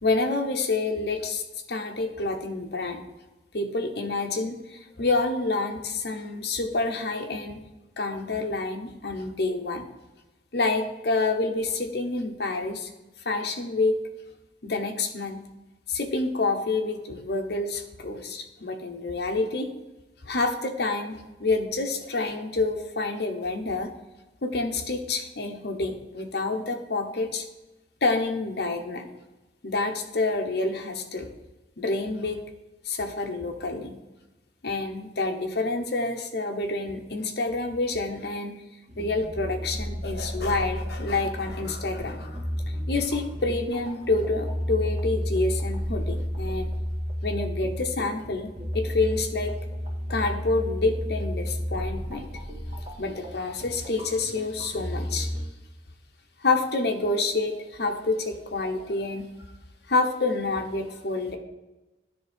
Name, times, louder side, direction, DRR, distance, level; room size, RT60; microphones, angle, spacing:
voice 1, 0.0-1.4 1.7-3.0 3.5-7.6 8.0-9.9 10.5-12.9 13.2-14.0 14.6-15.4 15.9-19.7 20.2-23.9 24.4-27.4 28.0-29.1 29.6-31.3 31.8-32.4 32.8-34.0 34.6-38.6 39.0-42.4 42.9-46.7 47.2-49.6 50.1-52.3 53.0-55.3 56.4-59.3 59.9-61.4, left 3 dB, 60° left, 4 dB, 1.0 m, -28 dB
sound 1, 38.9-55.4, equal, 40° right, 1.8 m, -32 dB
10.0 x 3.6 x 5.2 m, 1.1 s
head